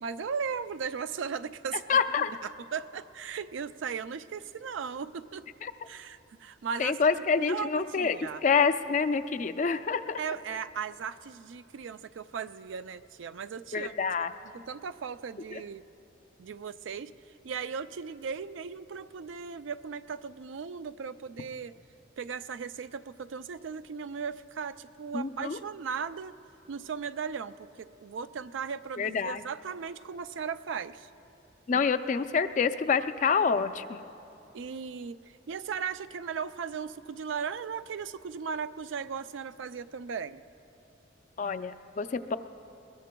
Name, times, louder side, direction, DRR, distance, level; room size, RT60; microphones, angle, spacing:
voice 1, 0.0-5.5 5.9-8.4 10.2-13.9 14.7-15.8 16.4-17.1 17.4-21.7 22.2-26.3 26.7-31.1 31.7-31.9 34.5-35.2 35.5-40.4, right 6 dB, 75° right, 12 dB, 0.4 m, -37 dB
voice 2, 1.9-2.3 5.6-5.7 6.8-10.2 13.7-14.3 15.5-15.6 25.1-25.6 29.0-29.4 31.7-34.0 41.4-42.4, left 5 dB, 40° left, 11 dB, 0.4 m, -27 dB
21.5 x 21.5 x 2.3 m, 2.8 s
head